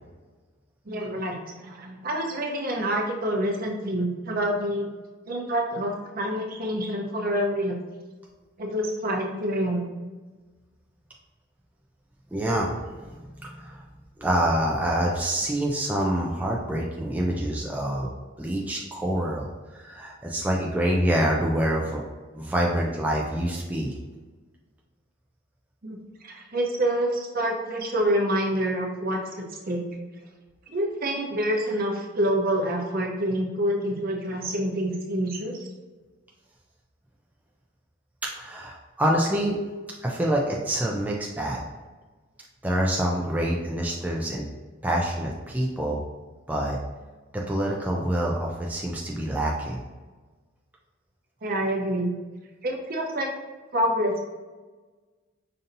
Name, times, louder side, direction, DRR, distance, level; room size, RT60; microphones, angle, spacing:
voice 1, 0.9-4.9 5.3-7.8 8.6-9.9 25.8-26.0 26.2-29.9 30.7-35.5 51.4-52.1 52.6-53.3 53.7-54.2, right 1 dB, 50° right, 0 dB, 0.7 m, -27 dB
voice 2, 12.3-12.7 13.0-13.8 14.2-18.1 18.4-22.0 22.3-23.9 38.3-39.6 40.0-41.6 42.6-44.4 44.8-46.0 46.5-46.8 47.3-49.8, right 1 dB, 10° right, -2 dB, 0.4 m, -26 dB
5.2 x 2.7 x 2.6 m, 1.3 s
head